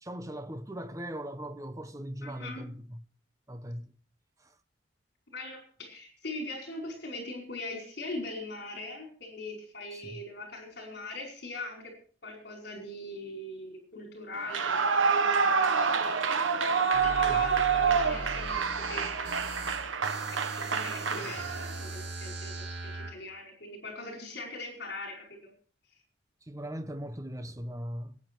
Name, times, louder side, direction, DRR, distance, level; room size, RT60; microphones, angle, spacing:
voice 1, 0.0-3.0 3.5-3.9 4.4-4.5 9.9-10.2 17.3-17.4 26.4-28.2, equal, 15° right, 0.9 m, -39 dB
voice 2, 2.2-2.6 5.3-11.9 12.2-16.0 17.0-20.0 20.3-25.5, left 2 dB, 55° left, 5.0 m, -41 dB
Clapping / Cheering / Applause, 14.4-21.8, right 5 dB, 85° right, 1.1 m, -27 dB
sound 1, 16.9-23.1, right 2 dB, 65° right, 5.6 m, -39 dB
21.5 x 9.7 x 4.6 m
head